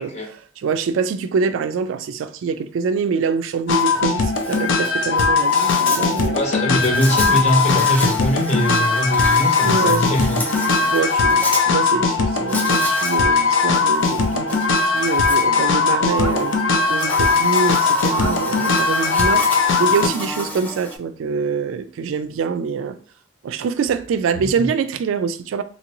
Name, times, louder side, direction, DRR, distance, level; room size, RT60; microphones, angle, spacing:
voice 1, 0.0-6.4 9.6-10.0 10.8-16.6 16.9-23.0 23.4-25.6, right 5 dB, 90° right, 0.3 m, -25 dB
sound 1, 3.7-20.1, left 4 dB, 85° left, 0.5 m, -19 dB
Insect, 3.7-3.8 4.2-11.6 12.5-13.2 13.6-21.0, left 1 dB, 10° left, 0.4 m, -32 dB
voice 2, 6.3-10.4 24.6-24.7, left 1 dB, 35° left, 0.7 m, -21 dB
3.0 x 2.5 x 2.9 m
head